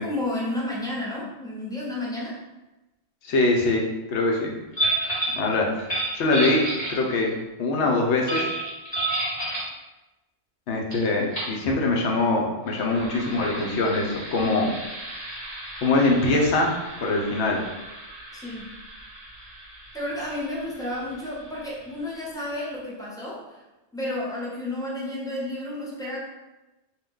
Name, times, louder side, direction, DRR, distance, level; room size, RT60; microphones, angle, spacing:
voice 1, 0.0-2.4 18.3-18.7 19.9-23.6 23.9-26.2, left 1 dB, 5° left, -6 dB, 0.5 m, -31 dB
voice 2, 3.2-4.5 5.3-5.7 6.1-6.6 6.9-8.5 10.7-14.8 15.8-16.7 17.0-17.6, left 2 dB, 75° left, 0 dB, 0.9 m, -23 dB
sound 1, 4.7-5.4 5.8-7.3 8.3-9.7 10.9-11.0 11.3-11.6 12.6-21.9, right 1 dB, 35° left, 1.5 m, -32 dB
2.9 x 2.2 x 3.5 m, 1.0 s
omnidirectional pair, 1.2 m